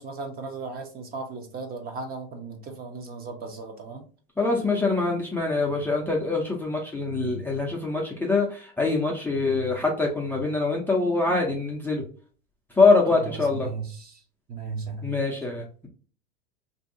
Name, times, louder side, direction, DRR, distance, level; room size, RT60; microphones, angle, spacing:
voice 1, 0.0-4.1 13.1-14.2 14.5-15.1, right 4 dB, 30° right, 4 dB, 0.8 m, -36 dB
voice 2, 4.4-12.0 12.8-13.7 15.0-15.9, left 3 dB, 5° left, -2 dB, 0.6 m, -24 dB
2.9 x 2.7 x 2.6 m, 0.40 s
supercardioid pair, 120°, 31 cm